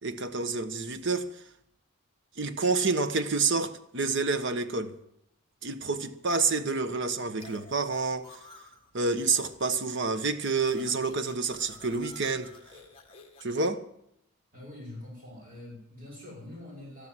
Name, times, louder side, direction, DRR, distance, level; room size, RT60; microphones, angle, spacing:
voice 1, 0.0-1.4 2.4-5.0 5.6-8.5 8.9-12.5 13.4-13.8, right 4 dB, 55° right, 1.2 m, -28 dB
sound 1, 7.4-8.9 9.2-9.8 10.1-13.7, left 3 dB, 25° left, 2.0 m, -52 dB
voice 2, 14.5-17.1, left 1 dB, 40° right, 5.8 m, -44 dB
13.5 x 12.5 x 7.5 m
head